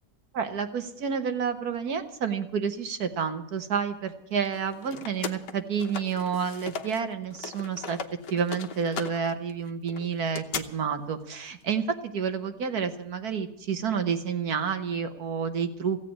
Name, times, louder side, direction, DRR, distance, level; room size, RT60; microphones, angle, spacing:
voice 1, 0.3-8.0 8.3-16.0, right 6 dB, 65° right, 9 dB, 1.5 m, -29 dB
sound 1, 4.4-7.0 7.3-10.6, left 6 dB, 80° left, 1.6 m, -38 dB
16.0 x 8.3 x 9.7 m, 0.84 s
omnidirectional pair, 1.8 m